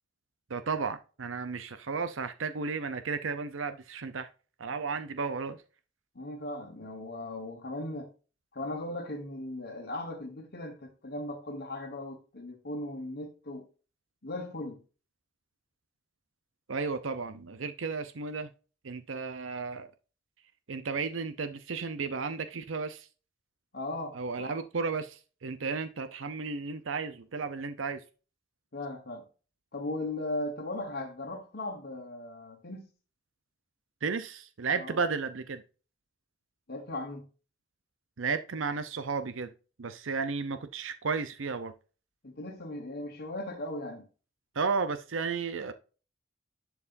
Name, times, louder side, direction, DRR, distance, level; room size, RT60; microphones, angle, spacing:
voice 1, 0.5-4.3 4.6-5.6 16.7-18.5 18.8-19.9 20.7-23.1 24.2-28.0 34.0-35.6 38.2-39.5 39.8-41.7 44.6-45.7, right 4 dB, 80° right, 0.7 m, -33 dB
voice 2, 6.1-8.1 8.5-13.6 14.2-14.8 23.7-24.6 28.7-29.2 29.7-32.9 34.7-35.0 36.7-37.3 42.2-44.1, left 2 dB, 50° left, 1.3 m, -38 dB
11.0 x 4.6 x 2.6 m
head